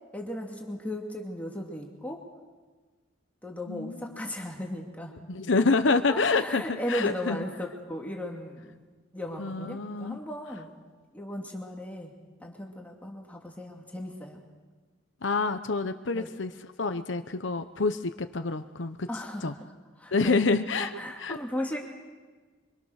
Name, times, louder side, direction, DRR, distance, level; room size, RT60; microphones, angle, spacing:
voice 1, 0.1-2.2 3.4-5.1 6.1-8.8 9.1-10.7 11.1-12.1 12.4-14.4 16.1-16.3 19.1-19.7 20.0-20.4 20.8-21.8, left 1 dB, 10° left, 0 dB, 2.7 m, -36 dB
voice 2, 3.7-4.2 5.3-7.4 9.4-10.2 15.2-19.1 19.4-19.5 20.1-20.9 21.2-21.4, left 3 dB, 80° left, 9 dB, 0.9 m, -27 dB
26.5 x 25.0 x 6.5 m, 1.4 s
head